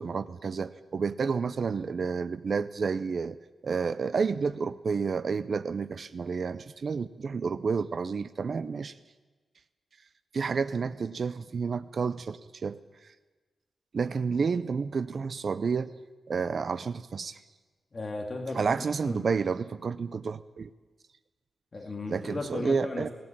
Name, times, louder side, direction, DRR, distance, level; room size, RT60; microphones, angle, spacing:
voice 1, 0.0-3.4 3.6-8.9 10.3-12.8 13.9-15.9 16.3-17.4 18.5-20.7 22.1-23.1, right 5 dB, 50° right, 13 dB, 0.6 m, -30 dB
voice 2, 17.9-18.7 19.0-19.3 21.7-23.1, left 2 dB, 30° left, 2 dB, 2.3 m, -35 dB
18.0 x 17.5 x 8.8 m, 1.3 s
wide cardioid pair, 140°, 0 cm